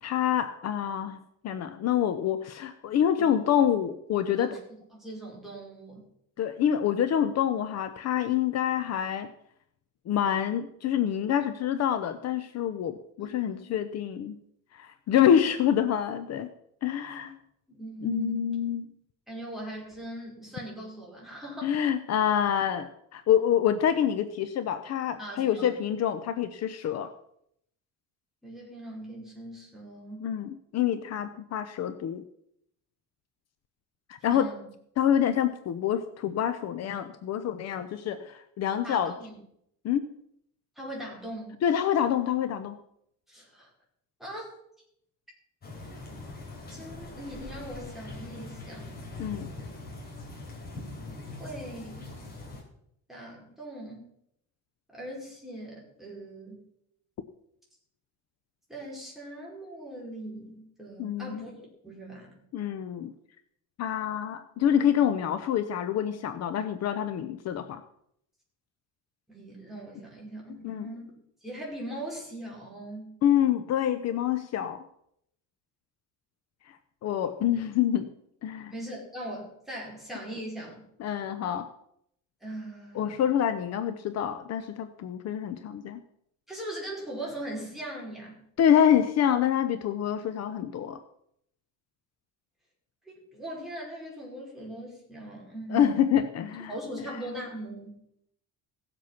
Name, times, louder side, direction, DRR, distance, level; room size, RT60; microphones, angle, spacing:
voice 1, 0.0-1.2 1.4-4.6 6.4-9.3 10.1-14.4 14.7-16.5 16.8-17.3 18.0-18.9 21.6-27.1 30.2-32.2 34.1-34.5 35.0-39.1 39.8-40.1 41.6-42.8 49.2-49.5 61.0-61.4 62.5-63.1 63.8-67.8 70.6-70.9 73.2-74.8 76.7-76.8 77.0-78.1 78.4-78.7 81.0-81.7 83.0-86.0 88.6-91.0 95.7-96.7, left 9 dB, 50° left, 10 dB, 0.8 m, -26 dB
voice 2, 5.0-6.0 13.2-13.7 17.0-17.3 17.7-18.5 19.3-21.8 25.2-25.8 28.4-30.3 34.3-34.7 38.8-39.3 40.7-41.6 43.3-43.7 44.2-44.5 46.7-49.1 51.4-52.1 53.1-54.1 54.9-56.6 58.7-61.5 61.8-62.4 69.3-71.1 71.4-73.1 78.7-80.8 82.4-83.2 86.5-88.4 93.1-95.9 96.7-98.0, right 1 dB, ahead, -4 dB, 5.1 m, -40 dB
sound 1, 45.6-52.6, left 2 dB, 30° left, 3.8 m, -42 dB
17.5 x 7.7 x 5.9 m, 0.74 s
cardioid pair, 155°, 32 cm